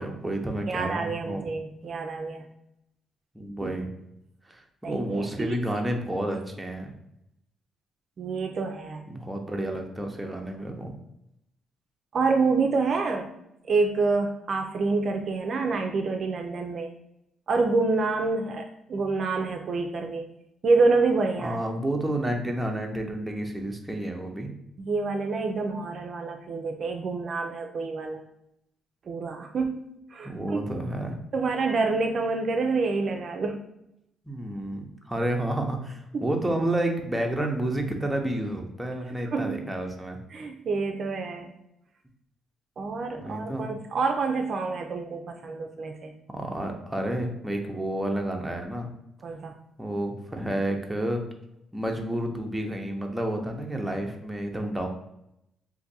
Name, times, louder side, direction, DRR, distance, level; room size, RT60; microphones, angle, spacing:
voice 1, 0.0-1.5 3.3-3.9 4.5-6.9 9.1-10.9 21.4-24.5 30.2-31.1 34.3-40.2 43.1-43.6 46.3-48.9 49.8-51.2 51.7-54.9, right 1 dB, 10° right, 2 dB, 0.6 m, -30 dB
voice 2, 0.7-2.5 3.6-3.7 4.8-5.6 8.2-9.0 12.1-13.3 13.7-16.9 17.5-20.3 20.6-21.6 24.8-28.2 29.1-29.8 30.1-30.6 31.3-33.6 36.1-36.3 39.3-39.7 40.3-41.5 42.8-46.1 49.2-49.5, right 3 dB, 50° right, 4 dB, 0.4 m, -27 dB
2.6 x 2.5 x 4.0 m, 0.82 s
cardioid pair, 90°, 0 cm